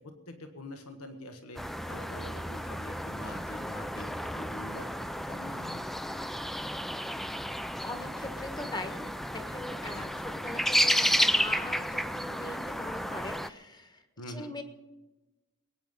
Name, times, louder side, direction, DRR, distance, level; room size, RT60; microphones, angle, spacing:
voice 1, 0.0-5.8 9.9-10.1 14.2-14.5, left 1 dB, 85° left, 6 dB, 1.5 m, -45 dB
sound 1, 1.5-13.5, equal, ahead, 0.4 m, -32 dB
voice 2, 7.8-14.6, left 2 dB, 20° left, 7 dB, 1.4 m, -41 dB
21.5 x 9.5 x 5.5 m, 1.1 s
head